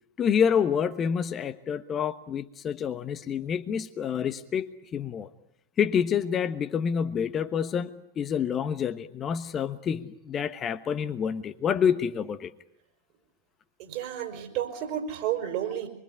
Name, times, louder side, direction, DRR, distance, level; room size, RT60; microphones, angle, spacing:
voice 1, 0.2-5.3 5.8-12.5, left 7 dB, 25° left, 10 dB, 1.2 m, -28 dB
voice 2, 13.8-15.9, right 10 dB, 45° right, 4 dB, 5.6 m, -31 dB
25.5 x 23.5 x 8.4 m, 0.79 s
figure-of-eight pair, 90°, 0 cm